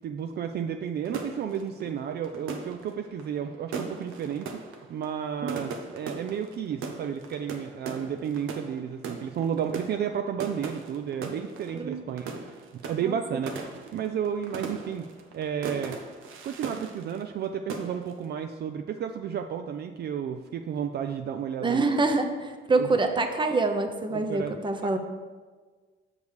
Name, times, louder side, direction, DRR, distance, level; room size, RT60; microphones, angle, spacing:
voice 1, 0.0-4.6 4.9-16.0 16.4-21.9 22.8-23.0 24.1-24.5 24.8-25.0, right 8 dB, 55° right, 6 dB, 0.4 m, -32 dB
sound 1, 1.0-17.4 17.7-18.2, right 4 dB, 90° right, 0.8 m, -39 dB
voice 2, 13.0-13.4 21.6-25.0, right 3 dB, 25° right, 6 dB, 0.8 m, -26 dB
6.5 x 5.2 x 4.8 m, 1.4 s
cardioid pair, 90°, 20 cm